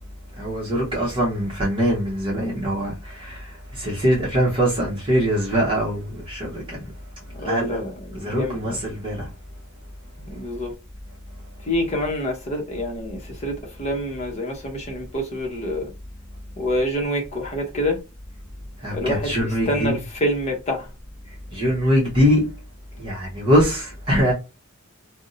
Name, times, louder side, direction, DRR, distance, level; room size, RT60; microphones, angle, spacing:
voice 1, 0.4-6.9 7.4-7.8 8.1-9.2 18.8-20.0 21.5-22.4 23.0-24.3, equal, 25° right, 0.8 m, -22 dB
voice 2, 7.3-8.8 10.2-10.7 11.6-15.9 16.6-18.0 18.9-20.9, left 1 dB, 30° left, 0.7 m, -27 dB
2.5 x 2.0 x 3.8 m
head